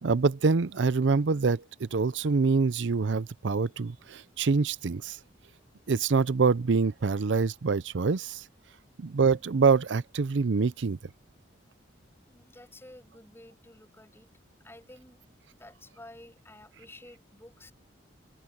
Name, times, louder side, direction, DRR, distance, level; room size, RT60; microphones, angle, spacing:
voice 1, 0.0-5.2 5.9-8.4 9.0-11.0, right 4 dB, 75° right, 0.5 m, -25 dB
voice 2, 12.2-14.3 14.6-15.2 15.6-17.7, left 1 dB, 15° left, 6.9 m, -51 dB
open air
head